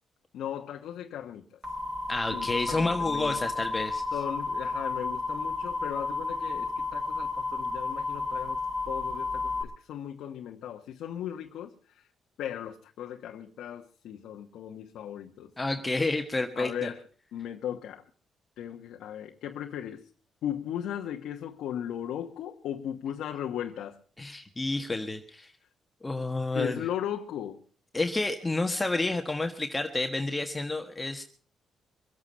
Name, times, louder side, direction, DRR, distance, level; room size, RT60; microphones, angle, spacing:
voice 1, 0.3-1.6 2.3-3.4 4.1-12.1 12.4-15.5 16.5-17.0 17.3-18.0 18.6-20.1 20.4-24.0 26.5-27.6, left 10 dB, 80° left, 1.2 m, -37 dB
sound 1, 1.6-9.6, left 3 dB, 30° right, 5.0 m, -32 dB
voice 2, 2.1-4.0 15.6-16.9 24.2-25.5 26.0-26.8 27.9-31.2, left 2 dB, 15° left, 1.4 m, -30 dB
24.0 x 8.7 x 5.4 m
cardioid pair, 90°, 0 cm